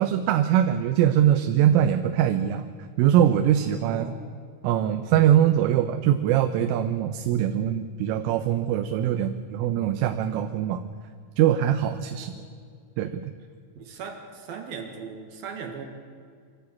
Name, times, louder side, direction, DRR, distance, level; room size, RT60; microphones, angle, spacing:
voice 1, 0.0-2.6 3.0-4.0 4.6-10.8 11.4-12.3 13.0-13.3, right 10 dB, 90° right, 8 dB, 3.4 m, -22 dB
voice 2, 3.9-4.2 9.1-9.3 12.2-12.5 13.8-15.8, right 6 dB, 60° right, 4 dB, 3.0 m, -38 dB
25.0 x 14.5 x 8.5 m, 2.2 s
omnidirectional pair, 5.6 m